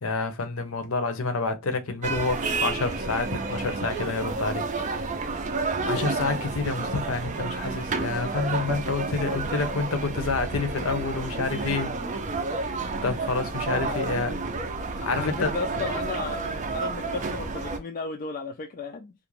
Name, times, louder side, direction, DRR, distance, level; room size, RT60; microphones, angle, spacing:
voice 1, 0.0-4.7 5.9-11.9 13.0-14.3 14.9-15.5, left 3 dB, 75° left, 0.6 m, -28 dB
sound 1, 2.0-17.8, right 3 dB, 35° right, 0.4 m, -30 dB
voice 2, 15.2-16.5 16.7-19.1, left 4 dB, 40° left, 0.3 m, -34 dB
2.5 x 2.1 x 3.0 m
head